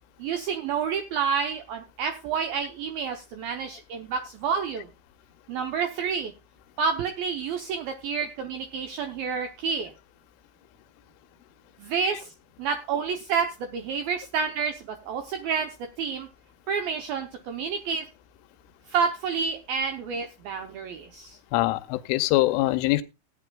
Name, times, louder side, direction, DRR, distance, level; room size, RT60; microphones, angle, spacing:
voice 1, 0.2-4.9 5.5-6.3 6.8-9.9 11.8-12.3 12.6-16.3 16.7-18.1 18.9-21.4, right 6 dB, 80° right, 2.1 m, -29 dB
voice 2, 21.5-23.0, left 18 dB, 90° left, 3.2 m, -23 dB
17.5 x 9.6 x 2.3 m
omnidirectional pair, 5.5 m